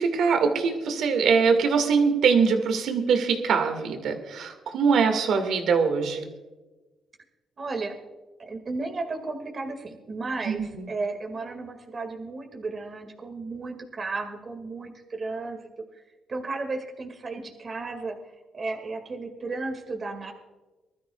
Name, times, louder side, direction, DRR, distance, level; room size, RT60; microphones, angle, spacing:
voice 1, 0.0-6.3 10.5-10.9, right 5 dB, 75° right, 6 dB, 1.9 m, -23 dB
voice 2, 7.6-8.0 8.4-15.7 15.9-16.0 16.3-18.2 18.5-20.3, right 3 dB, 40° right, 3 dB, 2.0 m, -34 dB
24.0 x 13.0 x 2.4 m, 1.2 s
cardioid pair, 90°, 0 cm